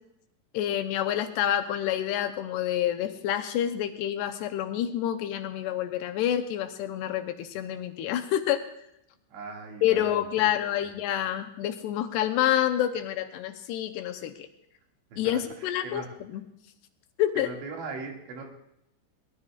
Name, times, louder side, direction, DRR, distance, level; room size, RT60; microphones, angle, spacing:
voice 1, 0.5-8.6 9.8-14.5 15.2-16.4 17.2-17.5, left 11 dB, 80° left, 7 dB, 2.6 m, -28 dB
voice 2, 9.3-10.9 15.1-16.1 17.3-18.5, right 3 dB, 85° right, 0 dB, 4.5 m, -40 dB
22.5 x 19.5 x 2.4 m, 0.81 s
omnidirectional pair, 5.1 m